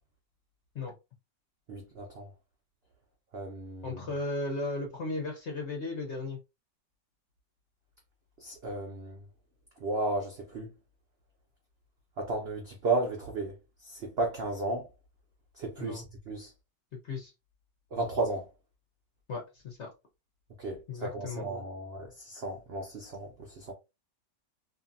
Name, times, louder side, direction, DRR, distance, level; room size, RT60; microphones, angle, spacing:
voice 1, 1.7-2.3 3.3-4.0 8.4-9.2 9.8-10.7 12.2-13.5 13.8-14.9 15.6-16.5 17.9-18.5 20.6-23.7, right 2 dB, 90° right, 0.5 m, -34 dB
voice 2, 3.8-6.4 15.8-16.0 16.9-17.3 19.3-19.9 20.9-21.4, left 2 dB, 60° left, 0.7 m, -35 dB
2.6 x 2.6 x 2.5 m
omnidirectional pair, 1.9 m